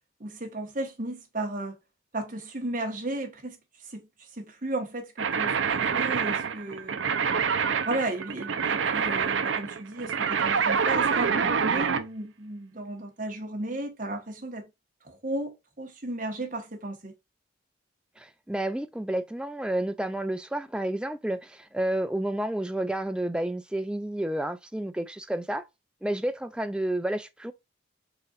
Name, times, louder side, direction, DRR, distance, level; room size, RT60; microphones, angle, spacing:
voice 1, 0.2-1.8 2.1-3.6 3.9-4.0 4.3-7.0 7.8-14.6 15.0-17.1, right 2 dB, 40° right, 1.2 m, -34 dB
sound 1, 5.2-12.1, right 6 dB, 75° right, 0.5 m, -26 dB
voice 2, 18.2-25.7 26.0-27.5, right 1 dB, 5° right, 0.3 m, -30 dB
4.2 x 3.8 x 2.4 m
head